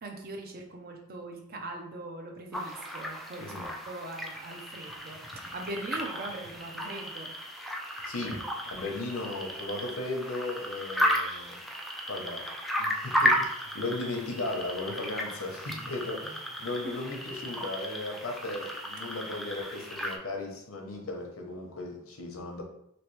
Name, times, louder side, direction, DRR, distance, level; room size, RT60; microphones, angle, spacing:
voice 1, 0.0-7.3 16.8-17.0, right 2 dB, 45° right, 3 dB, 0.6 m, -41 dB
sound 1, 2.5-20.2, equal, ahead, 0.3 m, -34 dB
voice 2, 8.0-8.4 8.7-11.6 12.1-12.5 12.8-22.6, left 2 dB, 80° left, 1 dB, 0.8 m, -36 dB
3.1 x 2.9 x 3.1 m, 0.75 s
head